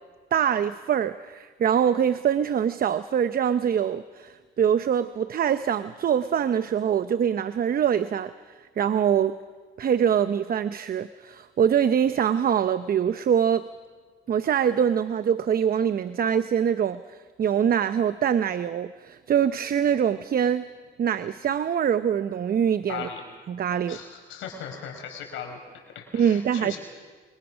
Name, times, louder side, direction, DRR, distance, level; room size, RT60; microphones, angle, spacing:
voice 1, 0.3-8.3 8.8-9.3 9.8-13.7 14.3-17.0 17.4-20.6 21.0-23.1 23.5-24.0 26.1-26.8, right 8 dB, 50° right, 12 dB, 0.7 m, -24 dB
voice 2, 22.9-23.2 23.9-25.6 25.9-26.8, left 7 dB, 85° left, 3 dB, 4.9 m, -37 dB
24.5 x 23.5 x 6.2 m, 1.5 s
cardioid pair, 90°, 20 cm